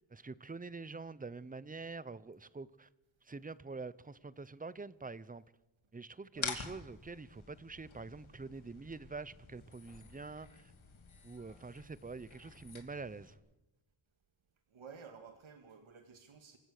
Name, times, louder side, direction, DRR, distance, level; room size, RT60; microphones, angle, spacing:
voice 1, 0.0-2.9 3.2-5.4 5.9-10.7 11.2-13.4, right 4 dB, 20° right, 0.6 m, -46 dB
sound 1, 6.3-13.3, left 5 dB, 85° left, 2.9 m, -48 dB
voice 2, 14.7-16.6, right 6 dB, 85° right, 2.0 m, -53 dB
26.5 x 15.5 x 6.6 m
wide cardioid pair, 155°, 46 cm